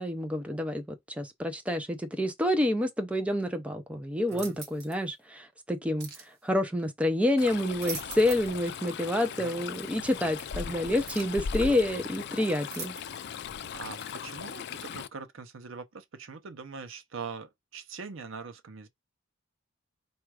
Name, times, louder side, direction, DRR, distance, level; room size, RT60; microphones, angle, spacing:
voice 1, 0.0-6.1 6.4-13.2, left 1 dB, 5° right, 0.5 m, -28 dB
sound 1, 4.3-5.0 6.0-6.3 7.6-8.6 8.9-9.0 10.4-10.5 11.1-11.4 12.7-13.3 14.0-14.1, right 5 dB, 50° right, 1.2 m, -42 dB
Stream, 7.4-15.1, left 7 dB, 55° left, 0.4 m, -38 dB
voice 2, 13.7-18.9, right 5 dB, 70° right, 0.7 m, -42 dB
4.2 x 2.4 x 4.7 m
head